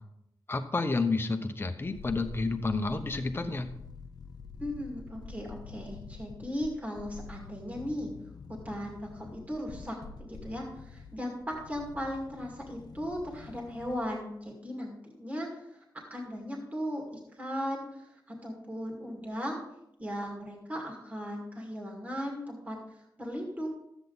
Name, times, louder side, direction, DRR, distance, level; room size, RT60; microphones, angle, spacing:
voice 1, 0.5-3.7, left 3 dB, 30° left, 6 dB, 0.9 m, -30 dB
sound 1, 1.8-14.2 14.5-14.6, left 4 dB, 60° left, 0.6 m, -47 dB
voice 2, 4.6-8.1 8.6-19.6 20.0-23.7, equal, 20° right, -1 dB, 2.2 m, -37 dB
13.0 x 8.3 x 4.0 m, 0.81 s
wide cardioid pair, 150°, 8 cm